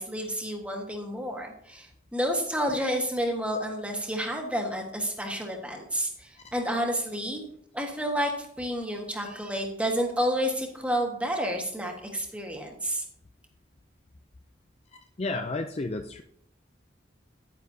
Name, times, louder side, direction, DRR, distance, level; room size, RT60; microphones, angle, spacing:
voice 1, 0.0-7.4 7.7-13.0, equal, 5° right, 2 dB, 1.5 m, -30 dB
voice 2, 14.9-16.2, left 2 dB, 35° left, 7 dB, 0.4 m, -32 dB
10.0 x 9.5 x 2.8 m, 0.72 s
head